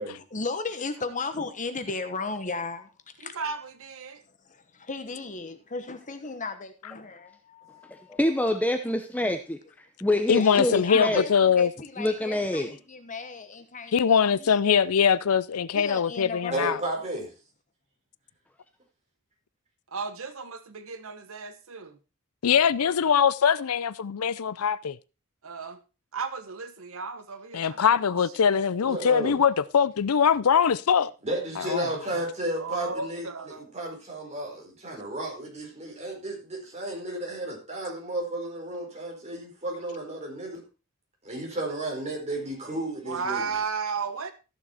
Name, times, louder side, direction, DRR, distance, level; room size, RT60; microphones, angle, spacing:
voice 1, 0.3-2.9 3.2-3.3 4.5-8.2 10.3-14.5 15.7-16.8, left 3 dB, 35° left, 1.1 m, -35 dB
voice 2, 3.2-4.2 19.9-22.0 25.4-25.8 26.1-27.8 28.5-28.7 32.6-33.8 43.0-44.3, right 5 dB, 65° right, 1.2 m, -34 dB
voice 3, 8.1-9.6 10.0-11.2 12.0-12.7, left 1 dB, 5° left, 0.8 m, -26 dB
voice 4, 10.3-11.7 13.9-16.8 22.4-25.0 27.5-31.1 31.6-31.9, left 7 dB, 75° left, 0.5 m, -22 dB
voice 5, 16.5-17.3 28.8-29.4 31.2-40.6 41.2-43.5, right 1 dB, 30° right, 4.6 m, -33 dB
14.0 x 6.9 x 4.3 m
head